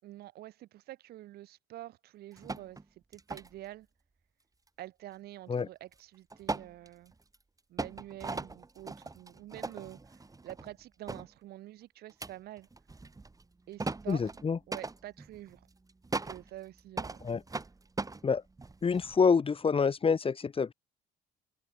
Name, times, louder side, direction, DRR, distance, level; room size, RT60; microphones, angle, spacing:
voice 1, 0.0-2.8 3.1-3.9 4.8-7.1 7.7-12.7 13.7-14.3 14.7-15.7 16.2-17.3, right 15 dB, 70° right, 4.4 m, -47 dB
sound 1, 2.3-2.8 3.1-3.6 5.9-6.0 6.3-7.4 7.8-10.8 11.1-11.3 12.1-19.2, right 3 dB, 20° right, 4.0 m, -40 dB
voice 2, 14.1-14.6 17.2-17.4 18.2-18.4 18.8-20.7, left 5 dB, 35° left, 1.7 m, -27 dB
supercardioid pair, 65°, 17 cm